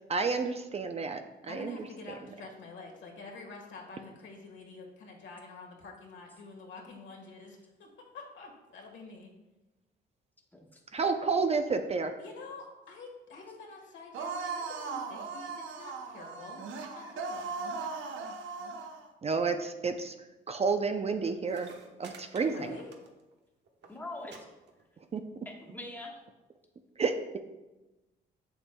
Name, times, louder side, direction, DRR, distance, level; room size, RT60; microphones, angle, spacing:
voice 1, 0.1-1.8 10.9-12.2 19.2-20.1 20.5-22.7 25.1-25.2 27.0-27.4, right 4 dB, 30° right, 7 dB, 0.5 m, -30 dB
voice 2, 1.5-9.3 12.2-16.6 16.9-17.5 22.4-22.9, left 3 dB, 70° left, 0 dB, 1.5 m, -47 dB
sound 1, 14.1-19.0, right 4 dB, 80° right, 0.7 m, -38 dB
sound 2, 21.2-21.3 21.5-23.4 23.7-23.9 24.3-24.4 24.7-25.2 26.0-26.1, right 4 dB, 60° right, 1.0 m, -51 dB
voice 3, 23.9-24.4 25.4-26.2, left 2 dB, 10° left, -1 dB, 1.3 m, -42 dB
7.0 x 6.9 x 2.2 m, 1.1 s
cardioid pair, 90°, 20 cm